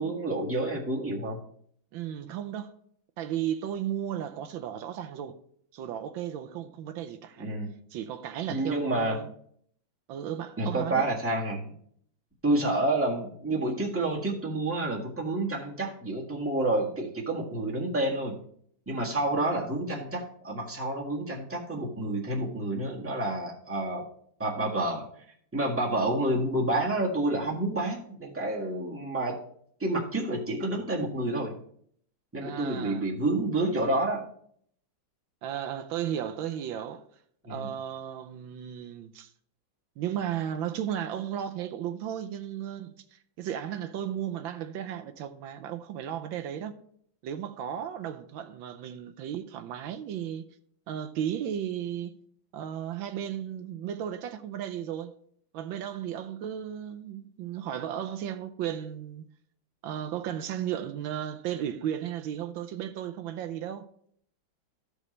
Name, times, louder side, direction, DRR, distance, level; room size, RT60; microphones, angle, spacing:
voice 1, 0.0-1.4 7.4-7.7 8.5-9.2 10.6-11.7 12.4-18.4 18.9-24.1 24.4-25.0 25.5-29.4 29.8-31.6 32.3-34.3 37.4-37.7, right 2 dB, 5° right, 1.4 m, -29 dB
voice 2, 1.9-2.7 3.2-5.4 5.7-7.5 7.9-9.3 10.1-11.1 32.4-33.1 35.4-37.0 37.5-39.3 40.0-46.7 47.2-50.5 50.9-52.2 52.5-55.2 55.5-59.2 59.8-63.9, right 10 dB, 85° right, 1.4 m, -35 dB
15.0 x 5.0 x 3.2 m
omnidirectional pair, 2.1 m